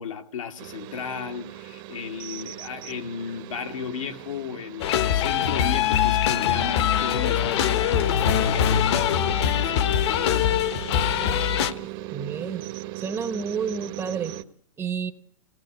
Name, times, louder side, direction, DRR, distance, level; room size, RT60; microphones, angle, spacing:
voice 1, 0.0-10.5, left 6 dB, 85° left, 1.9 m, -35 dB
sound 1, 0.6-14.4, right 15 dB, 45° right, 1.0 m, -39 dB
sound 2, 4.8-11.7, left 9 dB, 55° left, 1.1 m, -22 dB
voice 2, 12.1-12.6 13.0-14.3 14.8-15.1, right 6 dB, 15° right, 0.8 m, -30 dB
22.5 x 17.5 x 7.9 m
hypercardioid pair, 150°, 17 cm